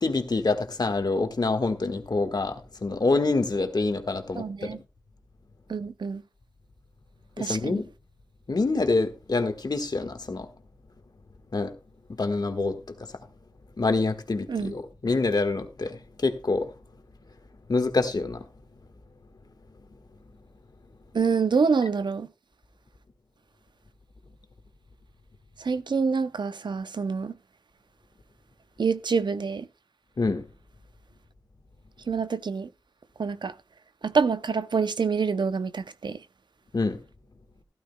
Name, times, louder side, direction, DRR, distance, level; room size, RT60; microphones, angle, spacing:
voice 1, 0.0-4.8 7.4-7.8 8.5-10.5 11.5-11.7 12.2-12.8 13.8-16.7 17.7-18.4 30.2-30.4 36.7-37.0, left 3 dB, 65° left, 1.4 m, -26 dB
voice 2, 4.3-4.8 5.7-6.2 7.4-7.8 14.5-14.7 21.1-22.3 25.6-27.3 28.8-29.7 32.1-32.7 33.2-33.5 34.0-36.2, right 5 dB, 80° right, 0.5 m, -26 dB
14.0 x 13.0 x 2.2 m
wide cardioid pair, 60°, 8 cm